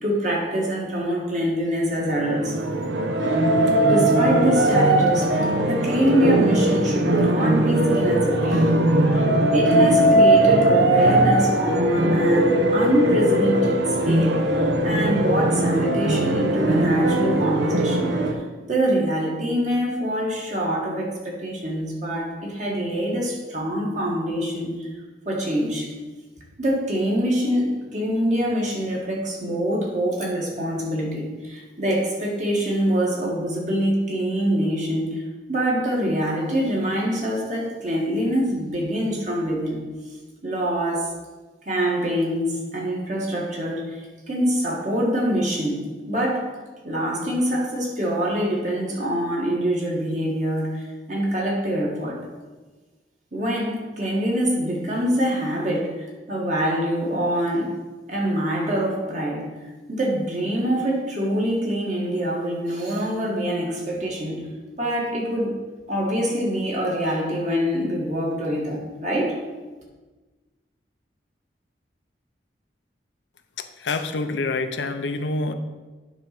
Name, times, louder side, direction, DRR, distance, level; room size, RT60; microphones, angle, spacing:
voice 1, 0.0-2.6 3.8-8.8 9.1-9.2 9.5-13.8 14.1-18.4 18.7-24.9 25.3-25.9 26.6-35.2 35.5-39.8 40.4-41.1 41.7-46.5 46.8-52.2 53.3-57.8 58.1-59.5 59.9-64.5 64.8-65.6 65.9-69.4, equal, 40° right, -3 dB, 1.9 m, -25 dB
sound 1, 2.0-18.3, right 1 dB, 80° right, 0.9 m, -20 dB
voice 2, 73.6-75.5, left 3 dB, 85° left, 8 dB, 0.6 m, -27 dB
9.3 x 3.9 x 6.0 m, 1.3 s
head